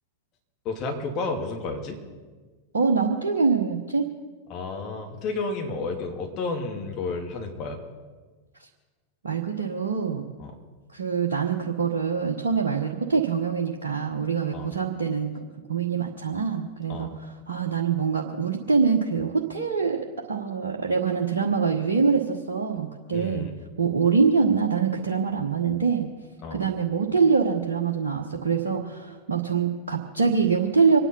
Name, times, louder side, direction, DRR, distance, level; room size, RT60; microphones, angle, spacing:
voice 1, 0.6-2.0 4.5-7.8 10.4-10.5 14.5-14.7 16.9-17.2 23.1-23.5 26.4-26.6, left 3 dB, 35° left, 2 dB, 2.8 m, -31 dB
voice 2, 2.7-4.1 9.2-10.3 10.9-15.3 15.7-23.5 23.8-26.1 26.5-31.0, right 5 dB, 70° right, 0 dB, 1.3 m, -24 dB
25.0 x 9.9 x 5.5 m, 1.4 s
figure-of-eight pair, 90°, 0 cm